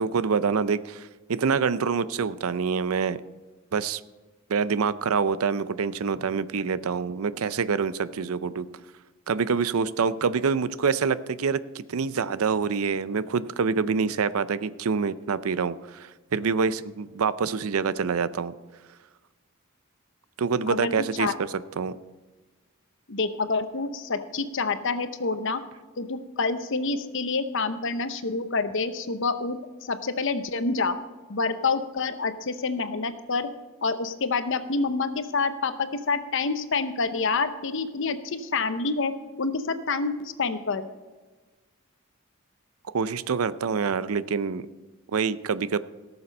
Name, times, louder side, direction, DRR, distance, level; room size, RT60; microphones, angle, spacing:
voice 1, 0.0-3.2 3.7-4.0 4.5-8.7 9.3-18.5 20.4-21.9 42.9-44.6 45.1-45.8, right 5 dB, 90° right, 16 dB, 0.5 m, -26 dB
voice 2, 20.7-21.3 23.1-25.6 26.0-31.0 31.3-33.5 33.8-39.1 39.4-40.9, left 4 dB, 60° left, 10 dB, 0.8 m, -27 dB
17.5 x 7.0 x 5.3 m, 1.3 s
head